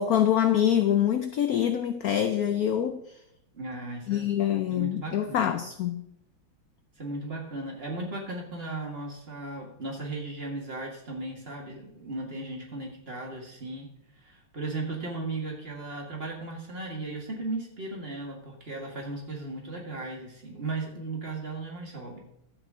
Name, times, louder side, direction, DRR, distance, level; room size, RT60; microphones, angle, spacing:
voice 1, 0.0-3.0 4.1-6.0, left 10 dB, 75° left, 0.8 m, -25 dB
voice 2, 3.5-4.3 4.6-5.5 7.0-13.9 14.2-22.2, right 2 dB, 30° right, 1.9 m, -36 dB
12.0 x 8.3 x 3.7 m
omnidirectional pair, 2.2 m